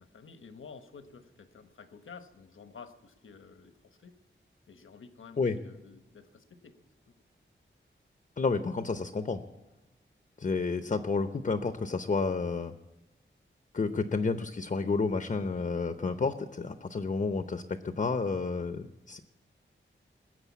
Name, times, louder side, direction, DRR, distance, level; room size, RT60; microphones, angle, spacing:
voice 1, 0.0-3.7 4.0-4.1 4.7-6.8 14.1-14.3, left 5 dB, 80° left, 9 dB, 1.1 m, -51 dB
voice 2, 8.4-9.4 10.4-12.7 13.7-19.2, left 4 dB, 40° left, 9 dB, 0.7 m, -30 dB
20.5 x 7.7 x 8.3 m, 1.0 s
wide cardioid pair, 110°, 20 cm